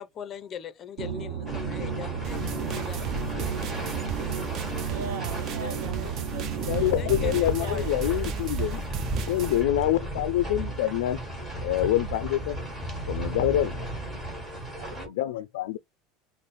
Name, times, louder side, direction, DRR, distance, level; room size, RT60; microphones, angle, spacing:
voice 1, 0.0-4.0 5.6-5.8 7.0-8.2, left 9 dB, 25° left, 0.5 m, -41 dB
sound 1, 1.0-7.4, right 7 dB, 60° right, 0.9 m, -33 dB
sound 2, 1.5-15.1, right 1 dB, 15° right, 1.3 m, -34 dB
sound 3, 2.2-9.6, right 7 dB, 35° right, 0.4 m, -37 dB
voice 2, 4.6-8.4 14.8-15.1, right 6 dB, 85° right, 0.8 m, -42 dB
voice 3, 6.7-8.8 9.3-11.2 11.6-12.6 13.1-13.9 15.1-15.8, left 13 dB, 85° left, 0.3 m, -26 dB
3.4 x 2.0 x 4.1 m
supercardioid pair, 165°, 0 cm